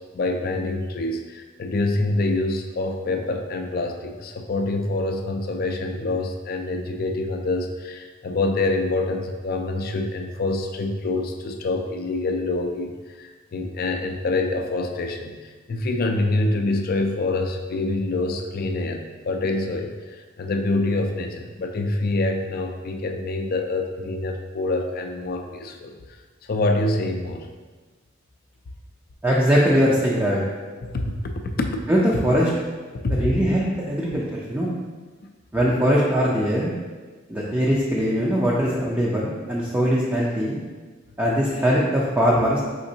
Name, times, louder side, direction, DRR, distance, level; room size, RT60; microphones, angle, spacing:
voice 1, 0.1-25.9 26.4-27.5 30.8-31.8 32.1-32.2 32.9-33.3 35.2-35.3, left 2 dB, 50° left, 5 dB, 0.4 m, -26 dB
voice 2, 29.2-30.4 31.9-32.5 33.1-34.7 35.5-36.7 37.3-40.6 41.2-42.6, equal, 10° right, -6 dB, 0.5 m, -21 dB
5.0 x 3.7 x 2.7 m, 1.4 s
head